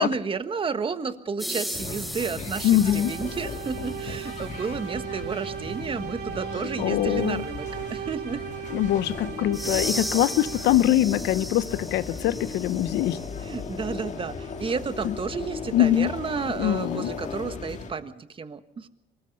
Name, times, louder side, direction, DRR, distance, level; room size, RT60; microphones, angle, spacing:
voice 1, 0.0-8.4 13.4-18.9, right 5 dB, 30° right, 1.5 m, -31 dB
sound 1, 1.4-4.4 9.5-13.6, equal, ahead, 1.0 m, -36 dB
sound 2, 1.7-17.9, left 5 dB, 45° left, 2.4 m, -37 dB
voice 2, 2.6-3.1 6.8-7.4 8.7-13.2 15.0-15.1 15.7-16.1 16.6-17.1, left 13 dB, 80° left, 0.9 m, -23 dB
sound 3, 2.6-11.0, right 10 dB, 70° right, 2.0 m, -38 dB
24.0 x 20.0 x 5.4 m
cardioid pair, 110°, 17 cm